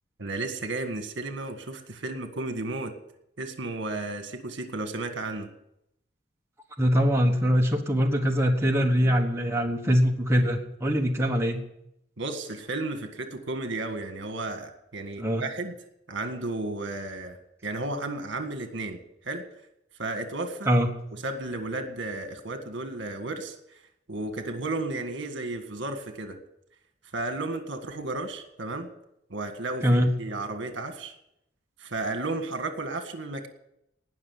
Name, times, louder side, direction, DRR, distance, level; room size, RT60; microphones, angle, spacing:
voice 1, 0.2-2.9 3.4-5.5 12.2-15.8 16.1-19.5 20.0-20.7 21.1-23.8 24.1-26.4 27.1-28.9 29.3-31.1 31.8-33.5, right 2 dB, 70° right, 6 dB, 1.8 m, -33 dB
voice 2, 6.8-11.6 15.2-15.4 20.7-20.9 29.8-30.1, equal, 15° right, 1 dB, 1.3 m, -23 dB
19.0 x 6.3 x 9.5 m, 0.80 s
head